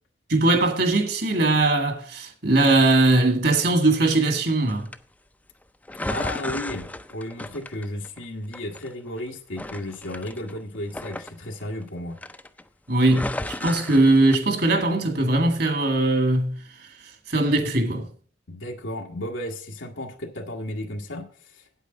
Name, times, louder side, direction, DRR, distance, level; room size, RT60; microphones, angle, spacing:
voice 1, 0.3-4.9 12.9-16.6 17.3-18.1, right 2 dB, 55° right, 2.0 m, -20 dB
sound 1, 4.7-5.0 5.9-8.2 8.5-9.2 9.6-11.9 12.2-12.6 13.0-14.4, left 1 dB, 10° left, 0.4 m, -34 dB
voice 2, 6.1-12.2 18.5-21.7, left 1 dB, 90° left, 1.5 m, -34 dB
8.7 x 8.2 x 5.3 m
head